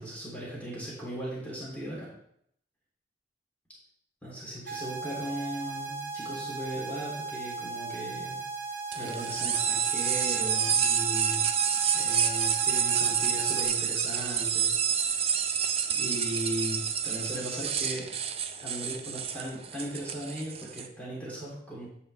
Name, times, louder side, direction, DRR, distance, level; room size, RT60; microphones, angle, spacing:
voice 1, 0.0-2.1 4.2-8.4 8.9-11.6 11.9-15.6 15.9-18.1 18.6-21.9, equal, 10° left, -7 dB, 3.1 m, -38 dB
sound 1, 4.7-13.7, right 4 dB, 60° right, 1.5 m, -37 dB
sound 2, 8.9-20.9, right 8 dB, 35° right, 0.6 m, -28 dB
9.6 x 6.8 x 3.3 m, 0.69 s
head